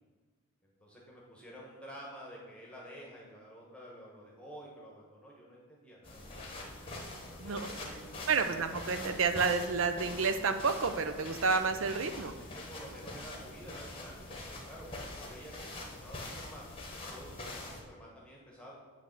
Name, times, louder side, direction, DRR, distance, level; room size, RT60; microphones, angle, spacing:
voice 1, 0.6-6.2 7.0-8.3 12.4-18.7, equal, 5° left, -3 dB, 1.2 m, -50 dB
sound 1, 6.0-17.8, left 2 dB, 25° left, 1.0 m, -44 dB
voice 2, 8.3-12.3, right 4 dB, 60° right, 8 dB, 0.5 m, -30 dB
8.4 x 3.3 x 6.5 m, 1.4 s
head